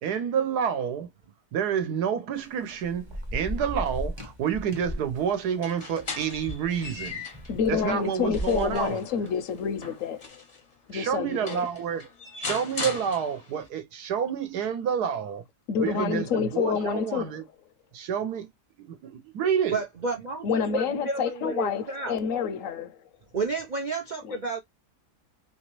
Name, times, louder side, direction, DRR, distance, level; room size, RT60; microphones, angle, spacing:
voice 1, 0.0-1.1 1.5-7.2 7.7-9.0 10.9-12.1 12.4-15.4 15.8-17.4 17.9-18.5 18.8-19.8, right 8 dB, 75° right, 1.3 m, -29 dB
Thunder / Rain, 2.3-10.0, equal, 20° right, 0.8 m, -37 dB
sound 1, 5.5-7.5 8.0-10.6 11.1-11.2 11.5-13.7, left 4 dB, 35° left, 0.6 m, -38 dB
voice 2, 7.5-10.4 10.9-11.7 15.7-17.4 20.4-23.1 24.2-24.4, left 6 dB, 65° left, 0.8 m, -28 dB
voice 3, 19.7-22.2 23.3-24.6, right 3 dB, 60° right, 0.4 m, -31 dB
3.1 x 3.0 x 2.9 m
omnidirectional pair, 1.7 m